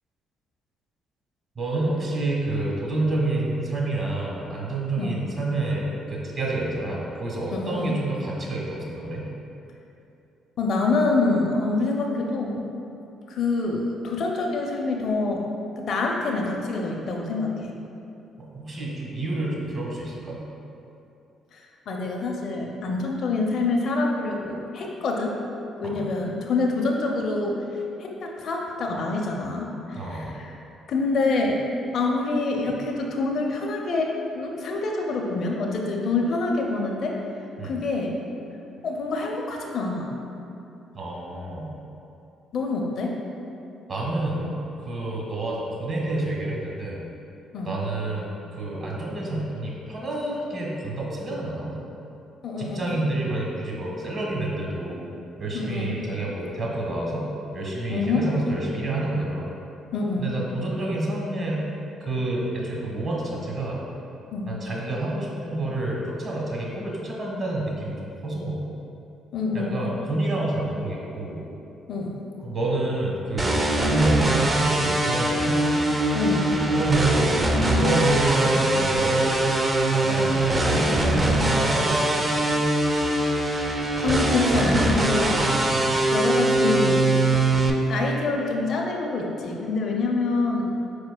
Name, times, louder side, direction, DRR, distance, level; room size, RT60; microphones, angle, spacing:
voice 1, 1.6-9.3 18.4-20.4 25.8-26.0 29.9-30.3 37.6-37.8 40.9-41.8 43.9-47.0 47.6-51.8 52.6-55.0 55.4-57.3 57.5-59.5 60.2-61.6 62.0-63.8 64.4-68.6 69.5-71.4 72.4-75.8 76.7-79.4 79.9-82.3 85.7-85.9, right 2 dB, 45° right, -3 dB, 1.2 m, -28 dB
voice 2, 7.5-8.0 10.6-12.7 13.3-15.5 15.8-17.7 21.5-25.4 25.8-27.6 28.0-30.5 30.9-31.6 31.9-37.2 37.6-38.2 38.8-40.1 42.5-43.2 47.5-47.8 52.4-53.0 55.5-55.9 57.9-58.2 59.9-60.3 64.3-64.6 69.3-69.8 71.9-72.2 76.1-76.5 84.0-85.5 86.1-87.2 87.9-90.7, left 3 dB, 60° left, 0 dB, 0.5 m, -26 dB
sound 1, 73.4-87.7, right 1 dB, 30° right, 0.5 m, -22 dB
5.0 x 4.3 x 2.2 m, 2.8 s
hypercardioid pair, 50°, 0 cm